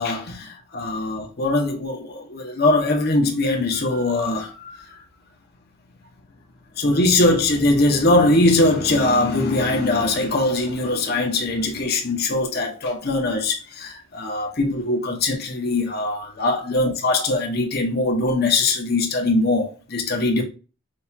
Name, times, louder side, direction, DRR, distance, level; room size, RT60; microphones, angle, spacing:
voice 1, 0.0-4.5 6.8-20.4, left 2 dB, 45° left, 1.0 m, -21 dB
6.3 x 2.4 x 2.7 m
head